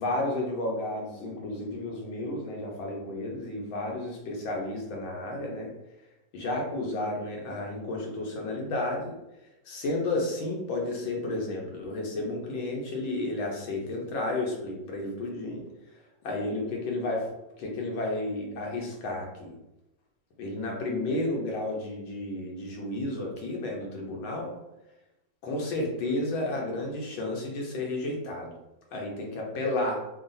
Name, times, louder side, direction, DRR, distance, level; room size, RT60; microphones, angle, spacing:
voice 1, 0.0-5.7 6.3-9.1 9.7-15.7 16.2-19.5 20.4-24.5 25.4-28.5 28.9-30.1, left 2 dB, 85° left, -1 dB, 1.6 m, -32 dB
3.7 x 2.4 x 3.9 m, 0.93 s
omnidirectional pair, 2.1 m